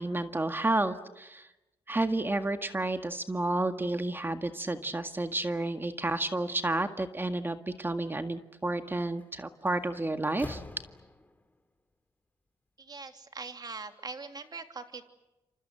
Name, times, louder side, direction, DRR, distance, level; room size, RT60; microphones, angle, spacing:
voice 1, 0.0-1.5 1.9-10.6, right 2 dB, 20° right, 7 dB, 1.8 m, -31 dB
Slam, 9.0-9.2 9.7-11.5, left 2 dB, 15° left, 3.0 m, -45 dB
voice 2, 12.8-15.0, right 4 dB, 40° right, 6 dB, 3.1 m, -42 dB
28.5 x 26.5 x 7.9 m, 0.99 s
cardioid pair, 75°, 10 cm